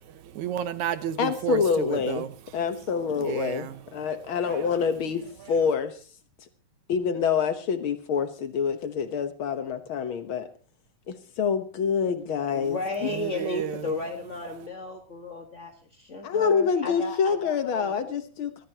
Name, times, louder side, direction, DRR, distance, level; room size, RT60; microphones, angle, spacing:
voice 1, 0.1-2.3 3.2-3.8 4.4-4.7 5.4-5.5 13.1-13.9, right 9 dB, 70° right, 2.0 m, -32 dB
voice 2, 1.2-2.3 2.5-5.2 5.5-6.0 6.9-10.5 11.1-13.1 16.2-18.6, left 6 dB, 70° left, 1.2 m, -26 dB
voice 3, 12.5-17.9, left 2 dB, 45° left, 0.9 m, -34 dB
23.5 x 15.0 x 2.9 m
omnidirectional pair, 3.9 m